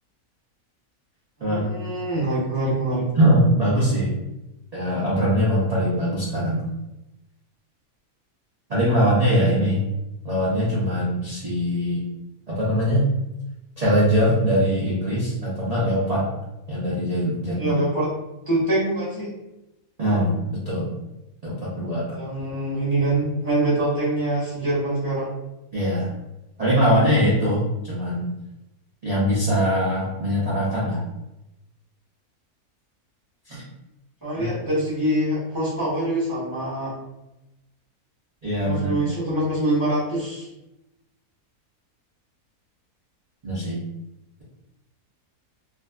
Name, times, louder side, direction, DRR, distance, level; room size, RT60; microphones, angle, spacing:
voice 1, 1.4-3.1 17.6-18.1 18.5-19.3 22.1-25.3 34.2-36.9 38.6-40.5, right 1 dB, 15° left, -10 dB, 0.9 m, -24 dB
voice 2, 3.1-4.1 4.7-6.6 8.7-9.8 10.2-12.0 12.5-13.1 13.8-16.3 16.7-17.8 20.0-20.9 21.4-22.0 25.7-26.1 26.6-28.3 29.0-31.0 33.5-33.6 34.4-34.5 38.4-39.1 43.4-43.8, equal, 75° right, -8 dB, 0.3 m, -22 dB
2.6 x 2.4 x 2.2 m, 0.94 s
omnidirectional pair, 1.6 m